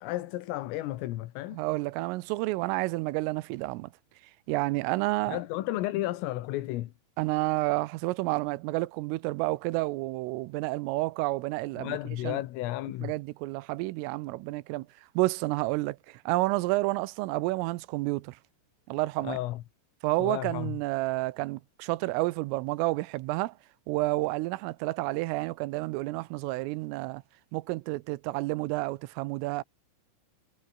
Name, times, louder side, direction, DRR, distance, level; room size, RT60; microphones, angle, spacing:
voice 1, 0.0-1.6 5.3-6.9 11.8-13.1 19.2-19.6 20.2-20.8, left 16 dB, 80° left, 3.9 m, -33 dB
voice 2, 1.5-3.9 4.5-5.4 7.2-12.0 12.2-12.4 13.0-14.9 15.2-18.4 18.9-19.4 20.0-23.6 23.9-27.2 27.5-29.6, right 20 dB, 90° right, 3.3 m, -30 dB
omnidirectional pair, 5.9 m